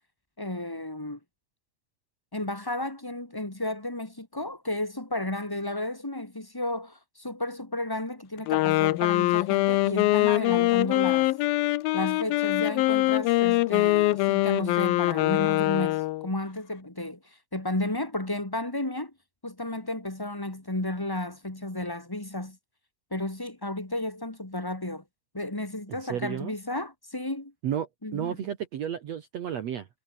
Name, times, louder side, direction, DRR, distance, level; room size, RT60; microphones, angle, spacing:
voice 1, 0.4-1.2 2.3-11.3 11.9-19.1 19.4-22.6 23.1-25.0 25.3-27.5 28.0-28.4, left 1 dB, 25° left, 0.4 m, -33 dB
Wind instrument woodwind instrument, 8.4-16.3, left 18 dB, 80° left, 2.2 m, -23 dB
voice 2, 25.9-26.5 27.6-29.9, right 9 dB, 65° right, 1.6 m, -32 dB
omnidirectional pair, 4.8 m